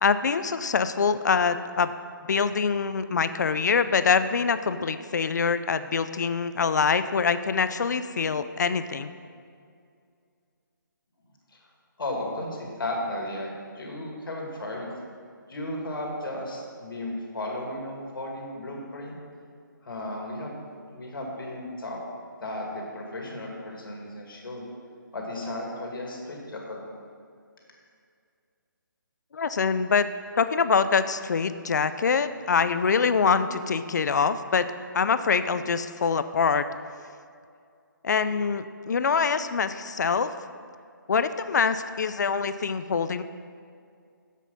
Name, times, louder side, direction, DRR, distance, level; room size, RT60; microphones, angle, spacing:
voice 1, 0.0-1.9 2.3-9.1 29.3-30.1 30.3-34.7 34.9-36.7 38.0-40.3 41.1-43.2, left 5 dB, 55° left, 12 dB, 0.4 m, -24 dB
voice 2, 12.0-14.9 15.5-19.2 19.8-20.6 20.9-22.0 22.4-24.6 25.1-26.8, left 1 dB, 75° left, -1 dB, 2.2 m, -34 dB
7.4 x 7.3 x 5.5 m, 2.3 s
hypercardioid pair, 175°, 11 cm